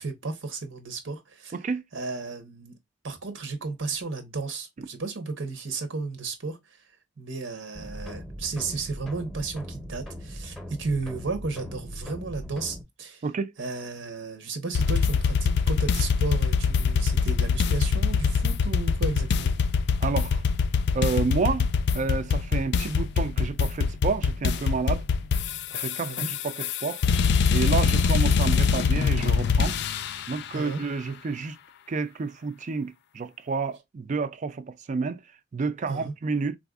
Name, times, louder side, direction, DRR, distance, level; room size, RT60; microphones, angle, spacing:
voice 1, 0.0-1.6 1.9-2.8 3.0-6.6 7.2-13.3 13.6-19.5 26.0-26.3 30.5-30.8 35.9-36.1, right 3 dB, 85° right, 0.9 m, -33 dB
sound 1, 7.7-12.8, equal, ahead, 0.8 m, -40 dB
sound 2, 14.7-30.3, left 5 dB, 65° left, 0.4 m, -24 dB
voice 2, 20.0-20.4 20.9-21.7 21.9-25.0 25.7-27.0 27.5-29.7 30.3-31.6 31.9-35.2 35.5-36.6, right 4 dB, 40° right, 0.4 m, -29 dB
3.9 x 2.5 x 2.3 m
head